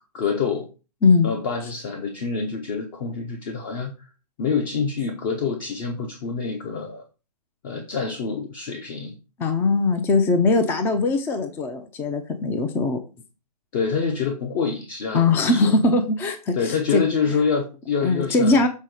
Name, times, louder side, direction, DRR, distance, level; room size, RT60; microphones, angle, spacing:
voice 1, 0.1-0.7 1.2-4.1 4.4-7.0 7.6-9.2 13.7-15.7 16.5-18.6, left 5 dB, 30° left, 3 dB, 1.1 m, -26 dB
voice 2, 1.0-1.3 9.4-13.0 15.1-17.0 18.0-18.7, left 3 dB, 10° left, 8 dB, 0.6 m, -20 dB
7.4 x 4.0 x 6.3 m, 0.32 s
hypercardioid pair, 150°, 21 cm